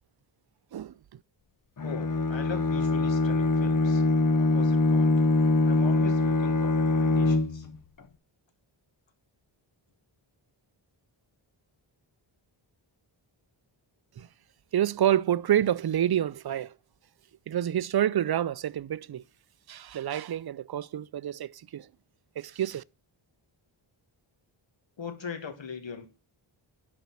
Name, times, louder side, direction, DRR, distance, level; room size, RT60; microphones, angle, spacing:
voice 1, 1.8-4.0 4.4-5.1 5.6-7.7 25.0-26.1, left 5 dB, 65° left, 1.8 m, -40 dB
Bowed string instrument, 1.8-7.8, left 2 dB, 40° left, 0.8 m, -23 dB
voice 2, 14.7-16.7 17.5-19.2 19.7-21.9 22.4-22.8, right 11 dB, 50° right, 0.5 m, -28 dB
11.5 x 4.3 x 7.3 m
wide cardioid pair, 110°, 49 cm